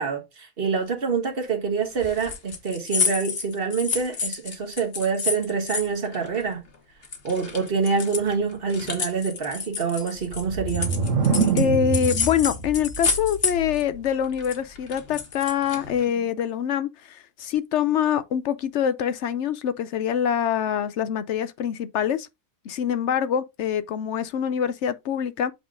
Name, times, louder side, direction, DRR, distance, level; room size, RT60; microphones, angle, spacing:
voice 1, 0.0-6.6 7.2-10.9 16.1-16.2, right 5 dB, 50° right, 1.5 m, -26 dB
sound 1, 2.0-6.8 7.0-11.7 11.9-13.8 14.1-16.0, left 5 dB, 55° left, 1.4 m, -29 dB
sound 2, 10.2-14.0, right 5 dB, 90° right, 1.5 m, -26 dB
voice 2, 11.5-22.3 22.6-25.5, left 8 dB, 70° left, 0.9 m, -25 dB
7.9 x 3.6 x 3.7 m
omnidirectional pair, 1.3 m